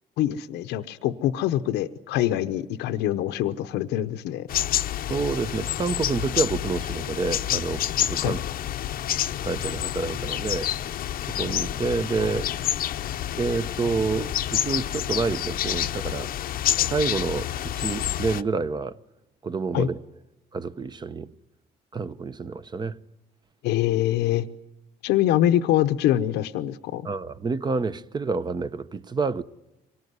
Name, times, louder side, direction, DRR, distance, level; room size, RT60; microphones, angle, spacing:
voice 1, 0.2-4.5 8.2-8.4 19.7-19.9 23.6-24.5 25.0-27.1, left 12 dB, 85° left, 0.9 m, -24 dB
sound 1, 4.5-18.4, left 11 dB, 60° left, 0.8 m, -28 dB
voice 2, 5.1-8.4 9.4-10.7 11.3-12.6 13.4-16.3 16.8-19.0 19.4-20.0 20.5-21.3 21.9-23.0 27.0-29.4, right 4 dB, 25° right, 0.9 m, -28 dB
24.0 x 19.0 x 9.5 m
cardioid pair, 110°, 17 cm